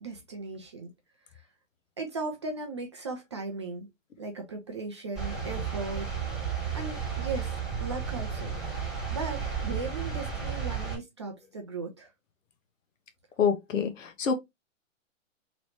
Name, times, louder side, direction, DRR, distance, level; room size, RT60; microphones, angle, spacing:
voice 1, 0.0-0.9 2.0-3.9 4.2-6.1 6.4-7.5 7.8-12.1, right 3 dB, 25° right, 0.3 m, -37 dB
sound 1, 5.1-11.0, right 6 dB, ahead, 1.7 m, -33 dB
voice 2, 13.4-14.3, left 6 dB, 75° left, 1.0 m, -26 dB
3.0 x 3.0 x 3.0 m
hypercardioid pair, 145°, 39 cm